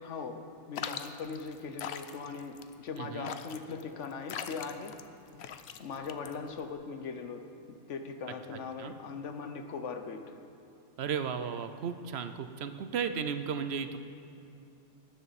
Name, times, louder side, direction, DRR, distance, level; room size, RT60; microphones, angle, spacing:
voice 1, 0.0-5.0 5.8-10.3, left 5 dB, 85° left, 7 dB, 1.2 m, -40 dB
sound 1, 0.7-6.7, left 8 dB, 70° left, 0.9 m, -42 dB
voice 2, 3.0-3.3 8.8-8.9 11.0-14.0, right 7 dB, 65° right, 9 dB, 0.9 m, -34 dB
20.5 x 9.6 x 4.2 m, 2.6 s
omnidirectional pair, 1.2 m